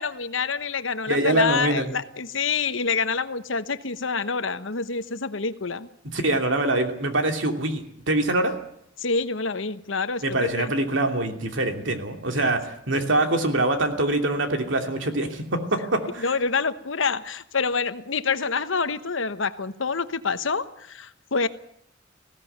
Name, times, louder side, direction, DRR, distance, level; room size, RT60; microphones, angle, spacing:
voice 1, 0.0-5.9 9.0-10.7 16.2-21.5, left 4 dB, 70° left, 12 dB, 1.1 m, -27 dB
voice 2, 1.1-1.9 6.1-8.5 10.2-16.3, right 2 dB, 65° right, 5 dB, 2.9 m, -24 dB
20.0 x 16.5 x 9.4 m, 0.73 s
head